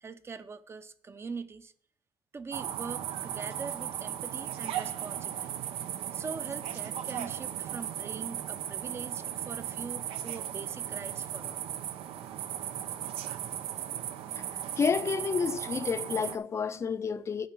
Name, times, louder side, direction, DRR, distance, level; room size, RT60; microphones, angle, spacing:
voice 1, 0.0-1.7 2.3-5.5 6.1-11.6, right 4 dB, 25° right, 0.6 m, -42 dB
sound 1, 2.5-16.4, right 10 dB, 85° right, 0.8 m, -36 dB
voice 2, 14.8-17.5, left 5 dB, 30° left, 0.5 m, -30 dB
9.3 x 5.7 x 6.3 m
cardioid pair, 130°, 9 cm